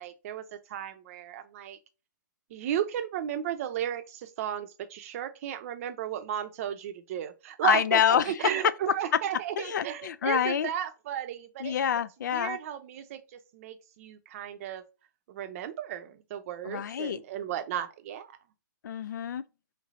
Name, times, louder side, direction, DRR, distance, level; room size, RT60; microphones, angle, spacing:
voice 1, 0.0-1.8 2.5-11.7 12.3-14.8 15.3-18.3, right 10 dB, 45° right, 0.6 m, -34 dB
voice 2, 7.6-8.5 9.6-10.7 11.6-12.6 16.7-17.2 18.8-19.4, left 8 dB, 65° left, 0.4 m, -27 dB
3.3 x 3.2 x 3.6 m
hypercardioid pair, 125°, 11 cm